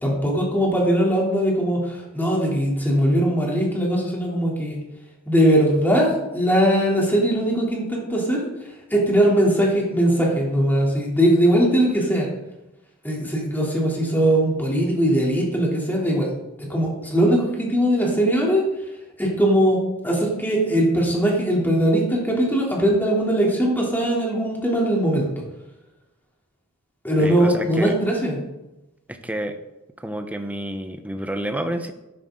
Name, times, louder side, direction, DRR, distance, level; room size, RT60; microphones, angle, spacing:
voice 1, 0.0-4.8 5.3-8.4 8.9-12.3 13.0-16.3 16.6-18.6 19.2-19.8 20.0-25.3 27.0-28.4, right 1 dB, 10° left, -3 dB, 3.1 m, -20 dB
voice 2, 27.2-28.0 29.1-29.6 30.0-31.9, right 1 dB, 5° right, 7 dB, 0.9 m, -29 dB
12.5 x 11.0 x 3.8 m, 0.96 s
head